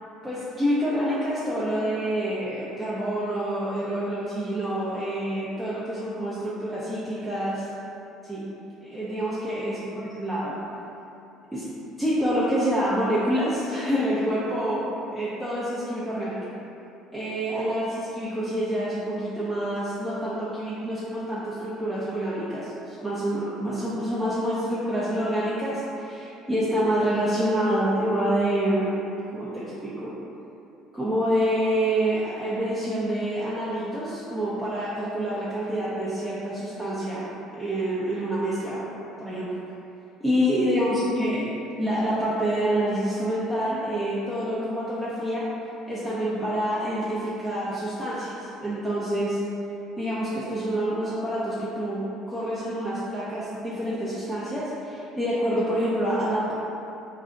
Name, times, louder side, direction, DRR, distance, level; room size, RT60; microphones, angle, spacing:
voice 1, 0.2-7.7 8.2-8.4 8.8-10.6 11.5-11.7 12.0-16.4 17.1-28.9 29.3-30.1 30.9-37.2 37.5-38.8 39.2-39.5 40.2-41.5 41.8-45.4 45.9-49.4 50.0-56.5, equal, 10° right, -10 dB, 0.5 m, -27 dB
2.4 x 2.1 x 3.7 m, 2.8 s
hypercardioid pair, 70°, 0 cm